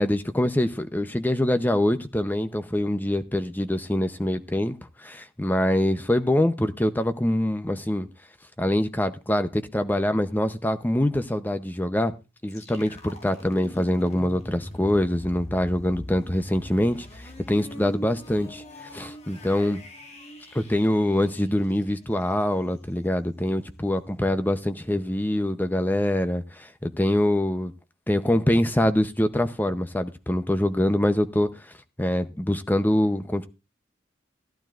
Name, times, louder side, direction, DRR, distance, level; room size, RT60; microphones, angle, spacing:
voice 1, 0.0-4.7 5.0-8.1 8.6-12.1 12.4-18.6 18.9-19.8 20.5-27.7 28.1-31.5 32.0-33.5, left 1 dB, 10° left, 0.7 m, -24 dB
sound 1, 12.5-22.3, equal, 35° left, 1.8 m, -43 dB
15.5 x 12.0 x 2.5 m
head